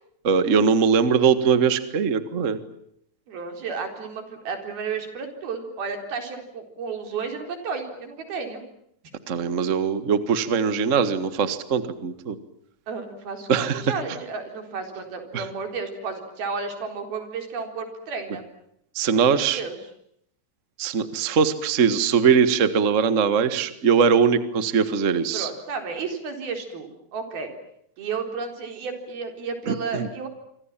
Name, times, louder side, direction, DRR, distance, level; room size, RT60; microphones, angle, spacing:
voice 1, 0.2-2.6 9.3-12.3 13.5-13.8 15.3-15.4 18.9-19.6 20.8-25.5 29.7-30.1, right 6 dB, 45° right, 12 dB, 0.9 m, -21 dB
voice 2, 3.3-8.6 12.9-18.4 19.1-19.8 25.3-27.5 28.0-30.3, right 5 dB, 85° right, 5 dB, 6.0 m, -32 dB
27.0 x 25.0 x 7.5 m, 0.74 s
omnidirectional pair, 4.2 m